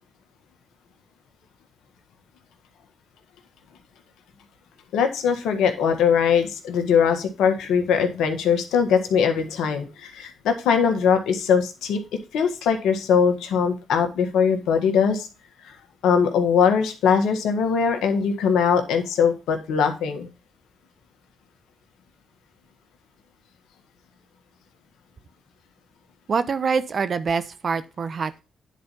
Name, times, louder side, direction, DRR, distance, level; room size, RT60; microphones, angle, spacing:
voice 1, 4.9-12.0 12.3-15.3 16.0-20.3, left 6 dB, 80° left, 5 dB, 1.5 m, -21 dB
voice 2, 26.3-28.4, right 5 dB, 55° right, 13 dB, 0.9 m, -25 dB
10.0 x 4.3 x 5.3 m, 0.30 s
supercardioid pair, 55°, 0 cm